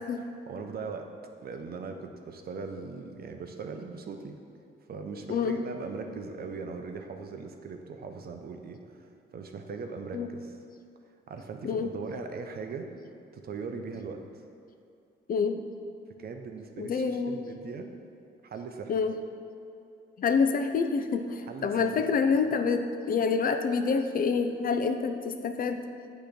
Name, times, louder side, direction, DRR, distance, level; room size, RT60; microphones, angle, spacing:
voice 1, 0.2-1.1 1.4-4.4 4.9-10.5 11.3-12.9 13.3-14.2 16.2-17.9 18.4-18.9 21.5-21.9, right 4 dB, 50° right, 4 dB, 0.6 m, -40 dB
voice 2, 5.3-5.6 10.1-10.3 11.6-11.9 15.3-15.6 16.8-17.5 18.9-19.2 20.2-25.8, left 5 dB, 45° left, 7 dB, 0.5 m, -27 dB
8.2 x 3.1 x 5.1 m, 2.6 s
cardioid pair, 90°, 20 cm